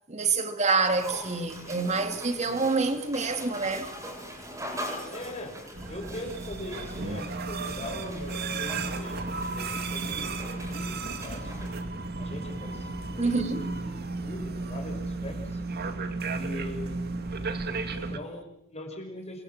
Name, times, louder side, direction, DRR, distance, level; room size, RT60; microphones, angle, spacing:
voice 1, 0.1-3.9 13.2-13.7, right 4 dB, 35° right, 2.5 m, -27 dB
sound 1, 0.9-11.7, equal, 15° right, 7.8 m, -42 dB
voice 2, 5.1-5.6 5.9-9.2 9.5-11.5 12.2-15.6 16.3-17.0 17.9-19.4, left 1 dB, 30° left, 5.8 m, -41 dB
sound 2, 5.7-18.2, right 3 dB, 50° right, 2.4 m, -34 dB
28.5 x 24.0 x 7.3 m
head